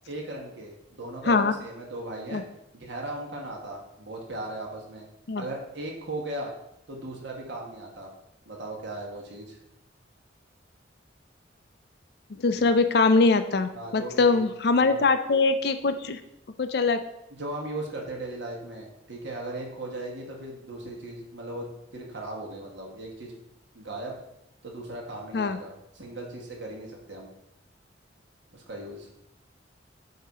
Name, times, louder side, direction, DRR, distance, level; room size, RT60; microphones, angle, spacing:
voice 1, 0.1-2.4 2.7-5.0 5.4-6.5 6.9-8.1 8.4-9.6 12.5-12.6 13.7-14.4 14.8-15.0 17.3-23.3 23.7-24.1 24.6-27.3 28.5-29.1, right 1 dB, 75° right, -1 dB, 1.6 m, -37 dB
voice 2, 12.4-16.2 16.6-17.1 25.3-25.6, left 3 dB, 60° left, 10 dB, 0.5 m, -22 dB
8.5 x 2.9 x 4.9 m, 0.83 s
head